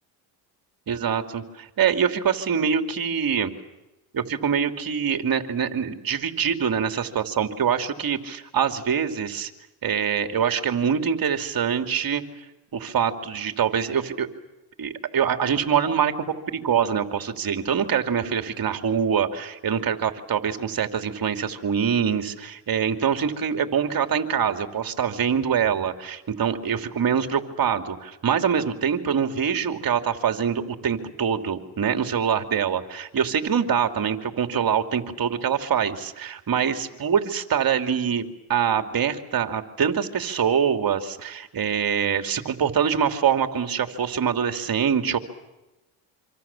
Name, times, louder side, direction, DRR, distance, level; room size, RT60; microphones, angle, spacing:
voice 1, 0.9-3.5 4.1-9.5 9.8-12.2 12.7-14.3 14.8-16.1 16.5-45.2, right 7 dB, 50° right, 7 dB, 2.9 m, -24 dB
26.5 x 26.5 x 7.3 m, 1.0 s
supercardioid pair, 85°, 46 cm